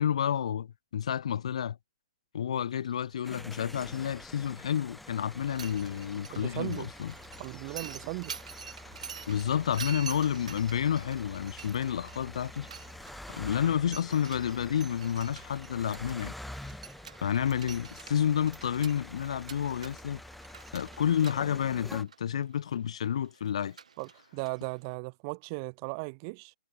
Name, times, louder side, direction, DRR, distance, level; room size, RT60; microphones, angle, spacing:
voice 1, 0.0-1.8 2.3-7.1 9.3-12.7 13.3-16.3 17.2-20.2 20.7-23.8, left 9 dB, 50° left, 0.9 m, -30 dB
sound 1, 2.6-16.8, left 1 dB, 90° left, 5.6 m, -58 dB
sound 2, 3.2-22.0, left 1 dB, ahead, 1.9 m, -47 dB
Mechanisms, 5.3-24.9, right 6 dB, 60° right, 1.4 m, -48 dB
voice 2, 6.3-6.9 7.4-8.3 24.0-26.5, right 34 dB, 30° right, 1.6 m, -37 dB
figure-of-eight pair, 125°, 4 cm